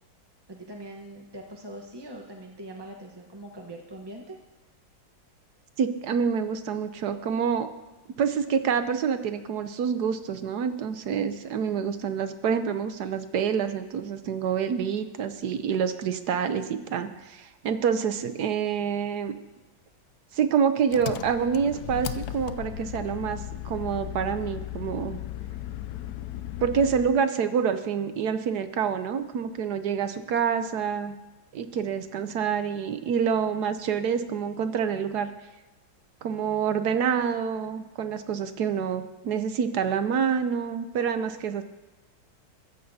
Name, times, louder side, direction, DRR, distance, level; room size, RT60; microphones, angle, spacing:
voice 1, 0.5-4.4 11.7-11.8, right 1 dB, 20° right, 0 dB, 0.7 m, -42 dB
voice 2, 5.8-7.7 8.2-19.3 20.3-25.2 26.6-31.1 31.5-35.3 36.2-41.6, right 7 dB, 65° right, 10 dB, 1.1 m, -27 dB
Engine, 20.9-27.2, left 12 dB, 75° left, 0.9 m, -36 dB
22.5 x 14.5 x 2.8 m, 1.1 s
omnidirectional pair, 2.2 m